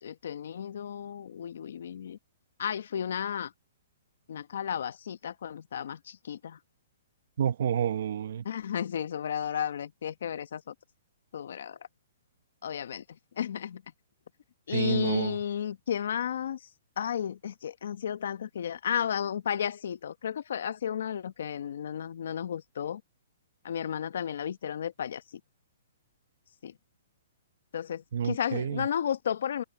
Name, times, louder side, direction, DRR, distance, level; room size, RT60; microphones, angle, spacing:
voice 1, 0.0-2.2 2.6-3.5 4.3-6.6 8.4-10.7 11.3-11.8 12.6-13.0 13.4-13.8 14.7-16.6 17.0-23.0 23.6-25.4 26.6-26.7 27.7-29.6, left 9 dB, 70° left, 1.2 m, -33 dB
voice 2, 7.4-8.4 14.7-15.4 28.1-28.9, right 9 dB, 60° right, 1.2 m, -29 dB
open air
hypercardioid pair, 155°, 0 cm